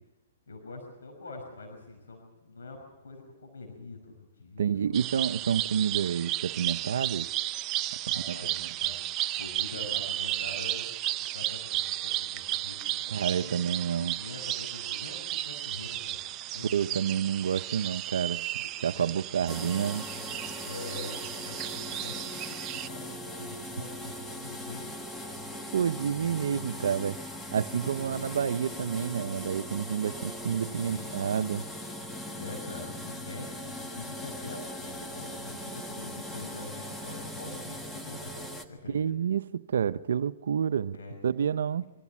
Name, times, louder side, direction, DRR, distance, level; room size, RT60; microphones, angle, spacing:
voice 1, 0.5-5.3 8.0-13.0 13.4-13.6 14.0-17.1 18.8-19.1 19.3-20.0 20.6-25.0 26.2-26.3 30.7-31.2 32.3-39.1 40.9-41.5, left 3 dB, 85° left, 5.8 m, -45 dB
voice 2, 4.6-7.3 8.3-8.7 13.1-14.2 16.7-18.4 18.8-20.0 25.7-27.2 27.5-31.6 38.9-41.0 41.2-41.8, right 8 dB, 80° right, 0.6 m, -29 dB
sound 1, 4.9-22.9, right 14 dB, 30° right, 0.7 m, -34 dB
sound 2, 19.5-38.7, left 1 dB, 10° left, 1.6 m, -40 dB
24.0 x 15.5 x 7.3 m
hypercardioid pair, 140°, 0 cm